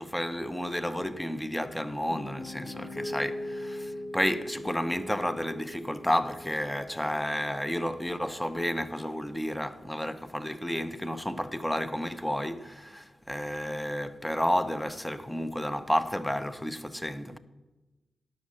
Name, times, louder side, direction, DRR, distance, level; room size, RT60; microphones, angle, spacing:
voice 1, 0.0-17.4, equal, 5° left, 0.8 m, -31 dB
Piano, 1.5-9.6, left 1 dB, 55° left, 1.1 m, -41 dB
10.5 x 6.4 x 7.5 m
cardioid pair, 60°, 0 cm